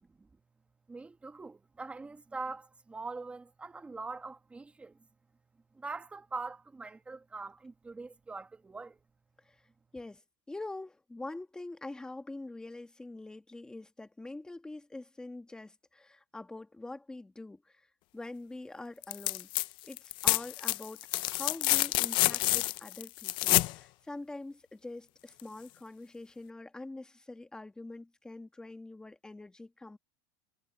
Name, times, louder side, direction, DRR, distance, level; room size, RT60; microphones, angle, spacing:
voice 1, 0.9-5.1 5.7-9.0, right 3 dB, 10° right, 1.5 m, -43 dB
voice 2, 10.5-17.9 18.1-19.5 19.8-30.0, left 2 dB, 5° left, 1.4 m, -45 dB
sound 1, 19.0-19.7 19.9-23.7 25.4-25.5, left 19 dB, 40° left, 0.5 m, -28 dB
supercardioid pair, 155°, 12 cm